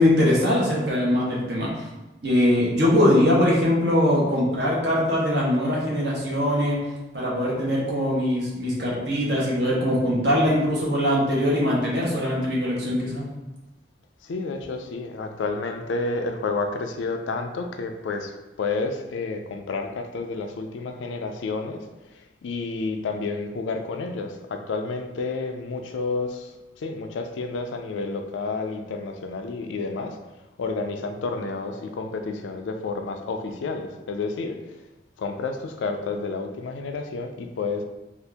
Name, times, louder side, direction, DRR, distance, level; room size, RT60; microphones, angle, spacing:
voice 1, 0.0-1.7 2.2-6.8 7.1-13.2, left 1 dB, 65° right, -5 dB, 0.9 m, -22 dB
voice 2, 14.2-21.9 22.4-26.5 26.8-30.2 30.6-34.6 35.2-37.8, left 3 dB, 80° left, 5 dB, 0.4 m, -30 dB
2.7 x 2.4 x 3.4 m, 1.0 s
head